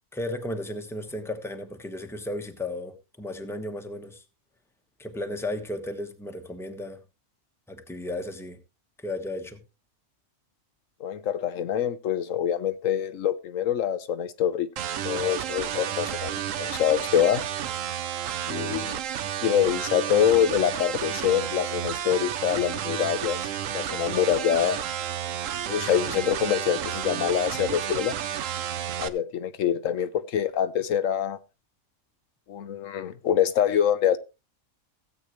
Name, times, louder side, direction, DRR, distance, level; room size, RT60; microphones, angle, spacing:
voice 1, 0.1-4.2 5.0-7.0 7.7-8.6 9.0-9.6, left 1 dB, ahead, 1.1 m, -34 dB
voice 2, 11.0-14.7 15.0-17.4 18.5-19.0 19.4-24.8 25.7-28.1 29.0-31.4 32.5-34.2, left 9 dB, 80° left, 1.1 m, -25 dB
sound 1, 14.8-29.1, right 10 dB, 80° right, 1.1 m, -31 dB
16.5 x 8.2 x 3.1 m
omnidirectional pair, 1.4 m